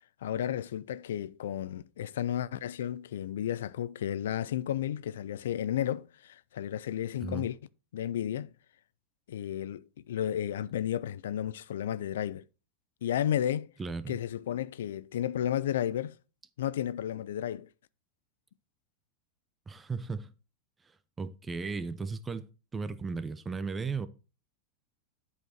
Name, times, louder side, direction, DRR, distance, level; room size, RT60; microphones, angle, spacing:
voice 1, 0.2-7.6 7.9-8.5 9.3-12.4 13.0-13.7 14.1-16.2 16.6-17.7, left 10 dB, 85° left, 0.3 m, -33 dB
voice 2, 13.8-14.2 19.7-20.3 21.2-24.1, right 4 dB, 15° right, 0.7 m, -36 dB
8.1 x 4.8 x 4.3 m
hypercardioid pair, 115°, 0 cm